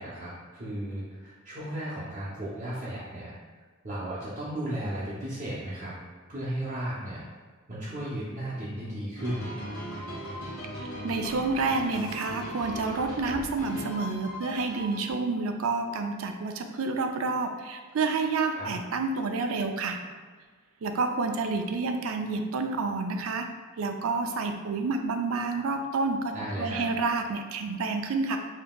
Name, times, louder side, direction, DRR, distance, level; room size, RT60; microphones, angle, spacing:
voice 1, 0.0-3.4 3.8-5.9 6.3-7.2 7.7-9.5 18.5-18.7 26.3-26.8, right 1 dB, 35° right, -8 dB, 0.7 m, -35 dB
sound 1, 9.2-15.1, equal, 75° left, 1.4 m, -38 dB
voice 2, 11.0-20.0 20.8-23.5 23.8-26.3 26.6-28.4, right 3 dB, 75° right, 5 dB, 0.4 m, -29 dB
5.5 x 2.8 x 2.3 m, 1.5 s
head